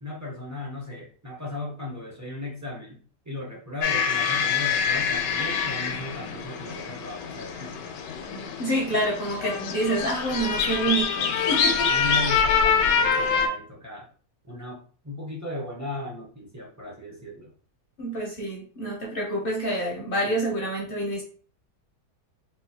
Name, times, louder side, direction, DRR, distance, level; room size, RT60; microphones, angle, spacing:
voice 1, 0.0-3.0 3.2-7.9 11.9-14.1 14.4-17.5, left 2 dB, 30° right, -4 dB, 0.3 m, -36 dB
sound 1, 3.8-13.5, left 6 dB, 80° left, 1.2 m, -25 dB
voice 2, 8.6-11.9 18.0-21.2, right 1 dB, 50° left, -2 dB, 0.6 m, -27 dB
3.8 x 2.3 x 2.7 m, 0.43 s
omnidirectional pair, 1.8 m